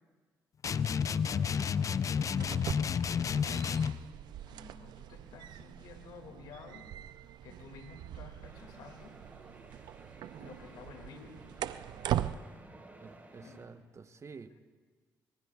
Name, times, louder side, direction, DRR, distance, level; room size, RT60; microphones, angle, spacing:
sound 1, 0.6-4.0, left 7 dB, 50° left, 0.5 m, -30 dB
voice 1, 0.8-3.7 4.5-6.9 7.4-9.2 10.4-11.4 13.4-13.6, left 4 dB, 80° left, 5 dB, 2.2 m, -52 dB
sound 2, 2.3-12.4, right 12 dB, 75° right, 0.5 m, -41 dB
sound 3, 8.4-13.7, right 2 dB, 25° right, 4.4 m, -55 dB
voice 2, 13.0-14.6, right 5 dB, 40° right, 10 dB, 0.9 m, -50 dB
25.5 x 23.0 x 2.4 m, 1.5 s
supercardioid pair, 60°, 7 cm